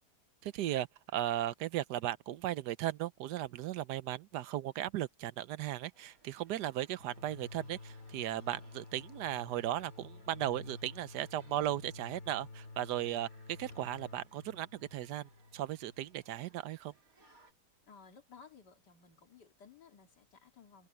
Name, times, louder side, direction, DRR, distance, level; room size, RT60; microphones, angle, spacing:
voice 1, 0.4-0.9 1.1-16.9, right 13 dB, 75° right, 1.3 m, -36 dB
sound 1, 5.9-17.5, right 3 dB, 55° right, 3.8 m, -68 dB
sound 2, 7.0-16.4, left 3 dB, 60° left, 2.6 m, -51 dB
sound 3, 11.3-11.9 13.7-14.4 14.7-14.8, left 7 dB, 40° left, 1.3 m, -63 dB
voice 2, 17.8-20.9, left 6 dB, 80° left, 2.8 m, -57 dB
omnidirectional pair, 1.8 m